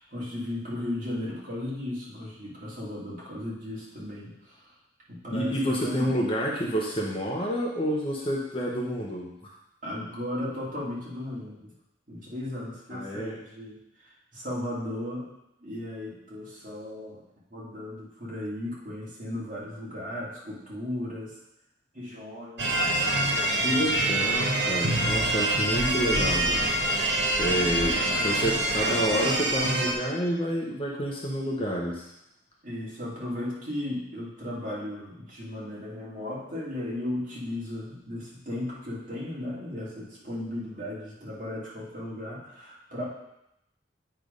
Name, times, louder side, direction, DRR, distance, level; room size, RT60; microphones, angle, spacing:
voice 1, 0.0-4.7 5.1-6.1 9.8-11.7 12.1-15.3 15.6-17.2 17.5-21.4 21.9-22.8 23.2-23.6 24.2-24.3 32.6-43.0, left 1 dB, 45° right, -7 dB, 2.3 m, -36 dB
voice 2, 5.3-9.5 12.9-13.4 23.6-26.7 27.4-32.1, equal, 30° left, -2 dB, 0.9 m, -29 dB
sound 1, 22.6-29.9, right 1 dB, 75° right, 1.0 m, -25 dB
8.0 x 3.4 x 5.2 m, 0.83 s
head